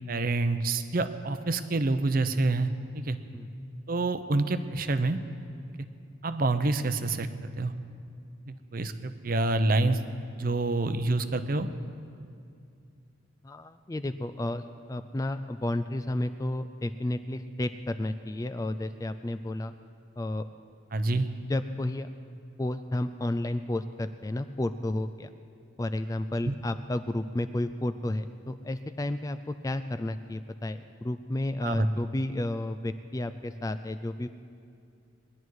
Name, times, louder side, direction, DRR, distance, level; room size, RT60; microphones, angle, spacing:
voice 1, 0.1-2.7 2.9-3.2 3.9-5.2 6.2-7.7 8.5-10.0 10.3-11.7 20.9-21.3 26.5-26.6 31.6-31.9, right 2 dB, 45° right, 10 dB, 0.7 m, -27 dB
voice 2, 13.4-14.6 14.9-19.7 20.2-20.5 21.5-22.1 22.6-25.3 25.8-34.3, left 1 dB, 15° left, 10 dB, 0.3 m, -32 dB
20.0 x 11.0 x 4.7 m, 2.5 s
head